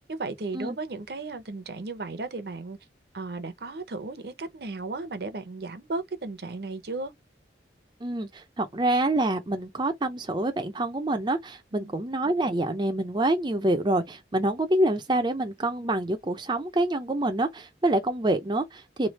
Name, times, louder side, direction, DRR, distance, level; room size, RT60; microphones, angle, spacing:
voice 1, 0.1-2.8 3.1-7.1 11.7-11.9, right 3 dB, 60° right, 0.7 m, -35 dB
voice 2, 8.0-19.1, right 1 dB, 25° right, 0.5 m, -26 dB
3.2 x 2.4 x 4.0 m
head